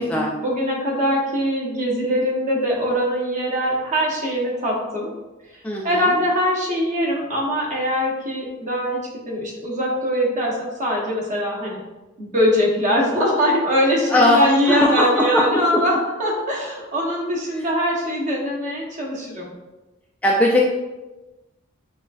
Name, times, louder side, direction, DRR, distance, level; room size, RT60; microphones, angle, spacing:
voice 1, 0.0-5.1 5.8-11.8 12.2-19.5, equal, 35° right, -3 dB, 1.0 m, -22 dB
voice 2, 5.6-6.1 14.1-15.8 20.2-20.7, left 1 dB, 5° left, -3 dB, 0.3 m, -19 dB
5.9 x 2.4 x 2.4 m, 1.1 s
head